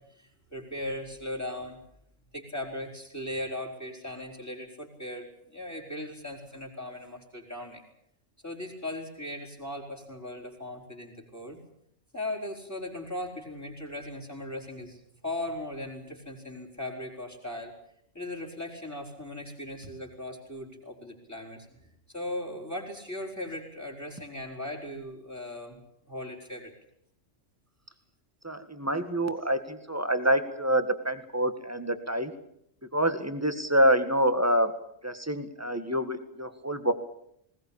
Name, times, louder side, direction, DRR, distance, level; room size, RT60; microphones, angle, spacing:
voice 1, 0.1-1.8 2.3-7.8 8.4-11.6 12.1-17.7 18.1-25.8 26.1-26.7, left 1 dB, 10° left, -1 dB, 4.7 m, -38 dB
voice 2, 28.4-32.3 32.9-34.7 35.0-36.9, right 1 dB, 10° right, 9 dB, 1.7 m, -26 dB
20.0 x 19.5 x 8.7 m, 0.73 s
omnidirectional pair, 1.3 m